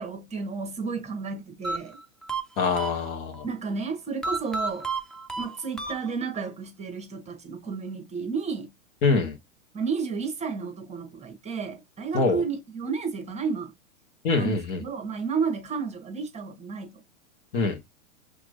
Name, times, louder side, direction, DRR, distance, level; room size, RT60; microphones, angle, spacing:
voice 1, 0.0-2.0 3.4-4.9 5.4-8.7 9.7-13.7 14.4-17.0, right 5 dB, 15° right, 1.2 m, -32 dB
sound 1, 1.6-3.5 4.2-6.5, right 3 dB, ahead, 0.6 m, -33 dB
voice 2, 2.6-3.5 9.0-9.4 12.1-12.4 14.2-14.8 17.5-17.8, left 4 dB, 55° left, 2.1 m, -24 dB
4.7 x 3.6 x 2.6 m
hypercardioid pair, 115°, 41 cm